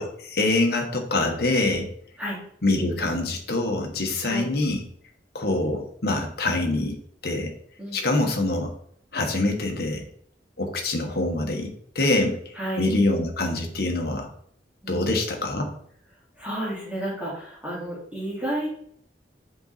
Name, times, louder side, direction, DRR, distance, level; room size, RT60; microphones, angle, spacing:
voice 1, 0.0-1.9 2.6-4.8 5.3-7.0 7.2-7.5 7.9-8.7 9.1-10.0 10.6-14.3 14.9-15.7, left 2 dB, 60° left, 3 dB, 1.2 m, -25 dB
voice 2, 12.5-12.9 14.8-15.1 16.4-18.7, right 1 dB, 5° right, -7 dB, 2.6 m, -31 dB
6.8 x 4.0 x 4.1 m, 0.63 s
head